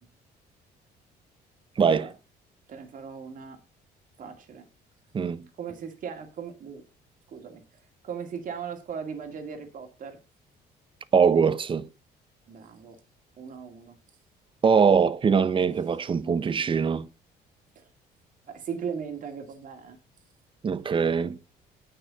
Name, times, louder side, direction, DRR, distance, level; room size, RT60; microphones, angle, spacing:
voice 1, 1.8-2.1 5.1-5.5 11.1-11.9 14.6-17.1 20.6-21.4, right 6 dB, 30° right, 0.7 m, -22 dB
voice 2, 2.7-3.6 4.2-4.7 5.6-6.8 7.3-7.6 8.0-10.2 12.5-13.0 13.4-14.0 17.8-17.9 18.5-20.0, right 6 dB, 50° right, 2.4 m, -38 dB
9.0 x 6.1 x 5.8 m
cardioid pair, 110°, 17 cm